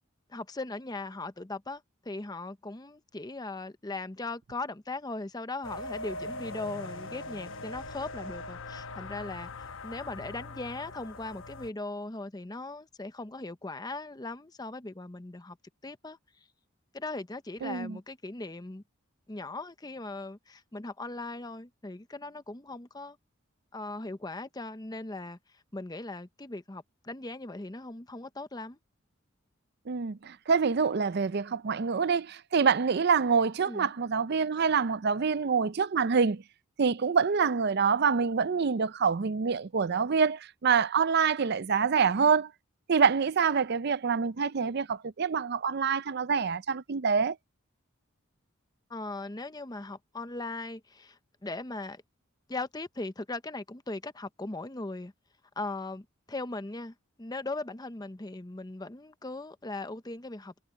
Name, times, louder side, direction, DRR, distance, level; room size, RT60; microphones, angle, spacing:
voice 1, 0.3-9.5 9.8-15.6 15.8-16.2 16.9-18.8 19.3-23.2 23.7-28.8 33.7-33.9 48.9-52.0 52.5-55.1 55.6-60.5, left 2 dB, 20° left, 0.7 m, -39 dB
sound 1, 5.6-11.7, left 2 dB, 65° left, 1.1 m, -41 dB
voice 2, 17.6-18.0 29.9-36.4 36.8-42.5 42.9-47.4, right 5 dB, 50° right, 0.5 m, -26 dB
head